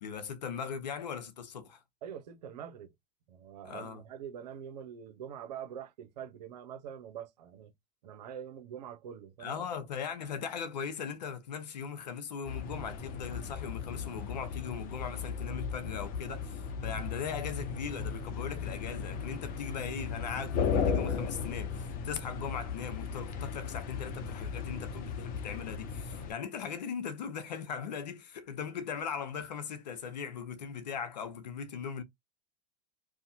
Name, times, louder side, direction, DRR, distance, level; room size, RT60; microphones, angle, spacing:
voice 1, 0.0-1.8 3.6-4.0 9.4-32.0, left 7 dB, 85° left, 0.7 m, -39 dB
voice 2, 2.0-2.9 3.3-7.7 8.0-9.6, right 8 dB, 80° right, 0.8 m, -44 dB
sound 1, 12.4-26.3, left 6 dB, 45° left, 0.7 m, -36 dB
2.8 x 2.3 x 2.7 m
hypercardioid pair, 95°, 21 cm